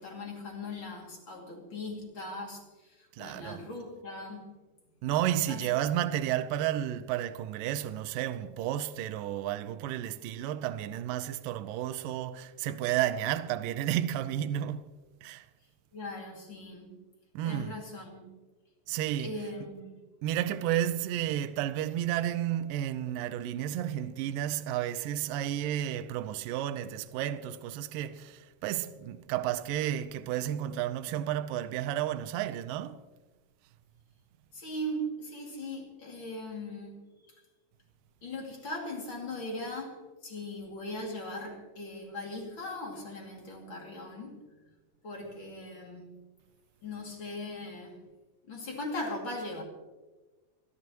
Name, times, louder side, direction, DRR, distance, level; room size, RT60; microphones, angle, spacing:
voice 1, 0.0-4.5 5.5-5.6 15.9-17.0 17.4-18.3 19.2-19.9 34.5-37.0 38.2-44.5 45.0-46.1 46.8-48.0 48.5-49.6, left 1 dB, 35° left, 2.7 m, -39 dB
voice 2, 3.1-3.6 5.0-14.8 15.2-15.5 17.3-17.7 18.9-19.3 20.2-33.0, right 12 dB, 80° right, 2.0 m, -32 dB
28.0 x 12.5 x 3.0 m
omnidirectional pair, 4.6 m